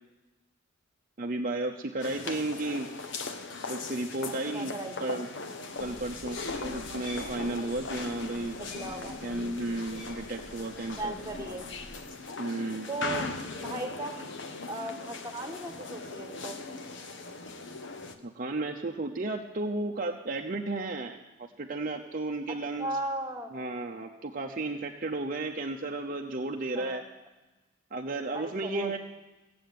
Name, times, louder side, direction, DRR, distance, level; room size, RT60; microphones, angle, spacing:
voice 1, 1.2-2.9 3.7-4.7 5.0-5.3 5.8-8.6 9.2-11.1 12.4-12.9 18.2-23.0 23.5-27.0 27.9-29.0, right 2 dB, 40° right, 2 dB, 0.7 m, -33 dB
sound 1, 2.0-18.2, left 3 dB, 55° left, 1.1 m, -39 dB
voice 2, 4.5-5.1 8.6-9.2 11.0-11.7 12.9-14.1 14.7-16.6 22.8-23.5 26.7-27.0 28.3-29.0, right 2 dB, 15° right, 4 dB, 1.5 m, -36 dB
sound 2, 5.8-12.0, equal, 40° left, 6.3 m, -48 dB
16.0 x 7.8 x 9.3 m, 1.1 s
head